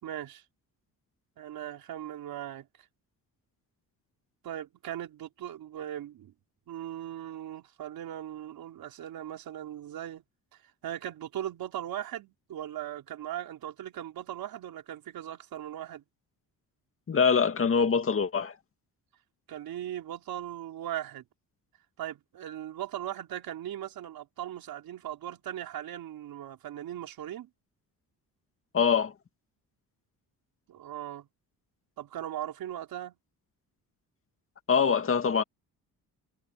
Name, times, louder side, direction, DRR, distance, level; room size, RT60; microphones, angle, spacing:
voice 1, 0.0-0.4 1.4-2.7 4.4-6.3 6.7-10.2 10.5-16.0 19.5-21.2 22.0-27.5 30.7-31.3 32.0-33.2, right 11 dB, 75° right, 4.5 m, -39 dB
voice 2, 17.1-18.5 28.7-29.1 34.7-35.4, left 6 dB, 35° left, 2.2 m, -24 dB
cardioid pair, 115°, 35 cm